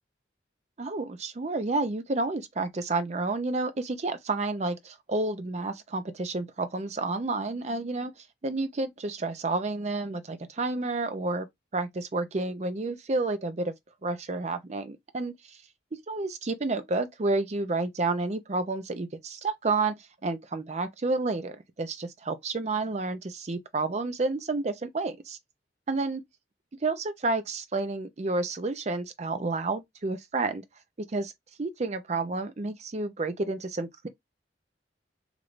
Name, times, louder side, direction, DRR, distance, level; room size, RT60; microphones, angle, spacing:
voice 1, 0.8-11.5 11.7-13.7 14.0-15.6 16.1-19.9 20.2-25.4 25.9-26.2 26.8-30.6 31.1-31.3 31.6-34.1, right 3 dB, 35° right, 0.5 m, -30 dB
3.1 x 2.5 x 3.0 m
head